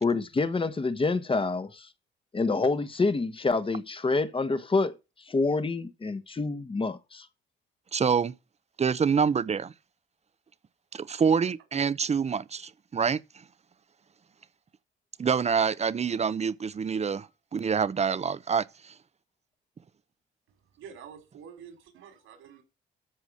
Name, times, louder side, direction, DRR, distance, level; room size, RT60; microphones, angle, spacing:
voice 1, 0.0-1.9 2.3-4.9 5.3-7.3, left 3 dB, 25° left, 1.3 m, -27 dB
voice 2, 7.9-8.3 8.8-9.7 10.9-13.2 15.2-17.3 17.5-18.9, right 6 dB, 35° right, 0.8 m, -26 dB
voice 3, 20.8-22.6, right 7 dB, 85° right, 4.8 m, -47 dB
13.5 x 4.7 x 6.5 m
cardioid pair, 90°, 20 cm